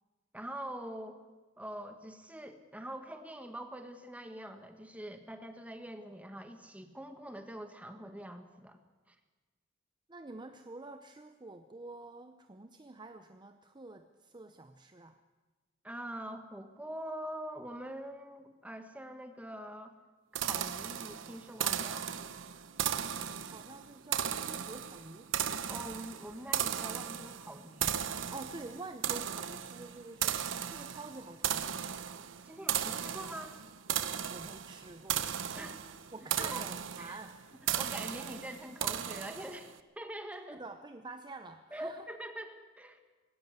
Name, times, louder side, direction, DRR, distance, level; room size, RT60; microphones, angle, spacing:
voice 1, 0.3-1.2 1.6-8.8 9.1-9.2 15.8-19.9 20.3-22.1 25.7-28.0 32.4-33.6 35.5-35.8 36.4-36.7 37.0-37.2 37.6-40.6 41.7-43.0, right 1 dB, 10° right, 7 dB, 1.5 m, -44 dB
voice 2, 10.1-15.2 23.5-25.3 28.3-30.4 30.7-31.9 34.3-37.4 40.5-42.1, right 2 dB, 25° right, 8 dB, 0.7 m, -48 dB
sound 1, 20.4-39.7, right 9 dB, 80° right, 0.9 m, -36 dB
19.0 x 17.0 x 8.1 m, 1.2 s
head